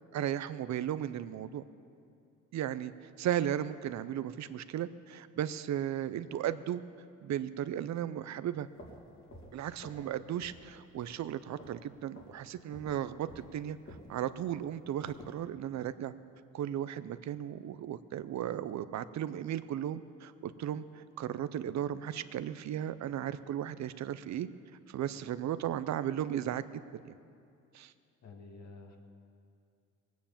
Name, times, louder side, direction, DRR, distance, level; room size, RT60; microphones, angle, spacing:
voice 1, 0.1-1.6 2.5-2.9 3.2-6.8 7.2-8.7 9.5-13.8 14.1-16.1 16.5-24.5 24.9-26.6 27.0-27.1 27.7-27.9, right 10 dB, 65° right, 14 dB, 0.6 m, -35 dB
sound 1, 8.6-10.1 10.4-10.7 11.0-11.9 12.1-12.4 12.7-15.4, left 1 dB, 45° left, 2.6 m, -52 dB
voice 2, 28.2-29.0, left 3 dB, 65° left, 2 dB, 2.2 m, -50 dB
19.0 x 9.3 x 7.3 m, 2.5 s
cardioid pair, 90°, 30 cm